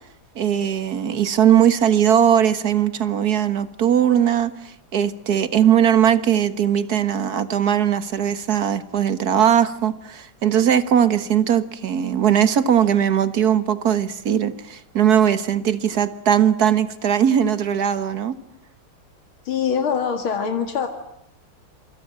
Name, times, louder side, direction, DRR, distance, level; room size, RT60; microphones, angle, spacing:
voice 1, 0.4-18.4, right 9 dB, 50° right, 13 dB, 1.8 m, -19 dB
voice 2, 19.4-20.9, left 7 dB, 85° left, 6 dB, 2.8 m, -23 dB
27.5 x 25.5 x 7.6 m, 0.77 s
omnidirectional pair, 2.2 m